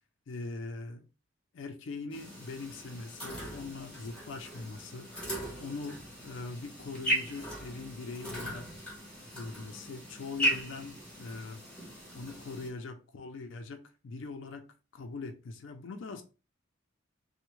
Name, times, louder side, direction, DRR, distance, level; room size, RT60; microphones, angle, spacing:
voice 1, 0.3-1.1 1.5-8.8 9.3-16.2, left 3 dB, 65° left, 0.4 m, -42 dB
sound 1, 2.1-12.7, equal, 5° left, 0.9 m, -38 dB
3.4 x 2.1 x 3.0 m
head